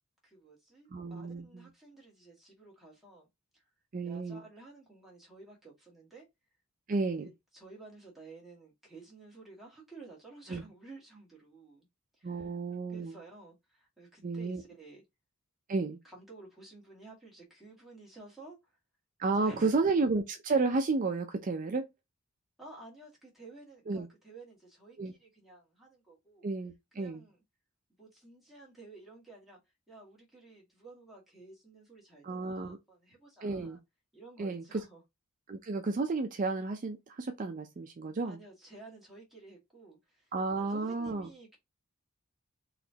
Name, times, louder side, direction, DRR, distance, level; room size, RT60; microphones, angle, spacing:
voice 1, 0.2-3.3 3.5-3.6 4.0-6.3 7.1-11.9 12.2-12.5 12.9-15.0 16.0-18.6 19.4-19.8 22.6-26.5 26.9-27.4 28.0-29.6 29.9-33.8 34.1-35.0 38.2-41.6, right 3 dB, ahead, 1.9 m, -53 dB
voice 2, 0.9-1.7 3.9-4.4 6.9-7.3 10.5-10.6 12.2-13.1 14.2-14.6 15.7-16.0 19.2-21.9 23.9-24.1 25.0-25.1 26.4-27.2 32.2-32.8 33.4-33.8 34.4-34.8 35.5-38.4 40.3-41.3, right 3 dB, 40° right, 0.4 m, -32 dB
4.0 x 2.9 x 2.8 m
head